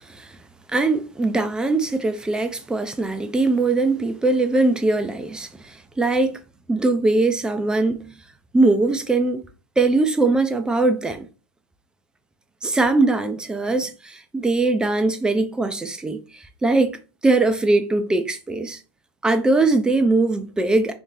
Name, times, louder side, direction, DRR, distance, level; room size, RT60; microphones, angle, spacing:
voice 1, 0.7-6.4 6.7-8.1 8.5-9.4 9.8-11.3 12.6-17.0 17.2-18.8 19.2-20.9, right 2 dB, 5° right, 0.3 m, -21 dB
2.9 x 2.7 x 3.8 m
figure-of-eight pair, 100°, 15 cm